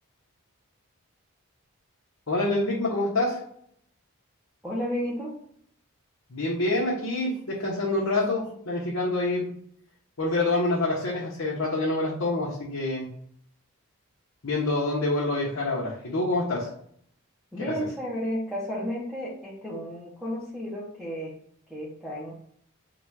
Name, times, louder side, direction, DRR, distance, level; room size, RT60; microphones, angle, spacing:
voice 1, 2.3-3.4 6.3-9.5 10.2-13.1 14.4-16.7 17.6-17.7, left 2 dB, 70° left, -6 dB, 0.9 m, -26 dB
voice 2, 4.6-5.4 17.5-21.4 21.7-22.3, equal, ahead, -6 dB, 0.7 m, -32 dB
3.9 x 2.3 x 4.6 m, 0.65 s
head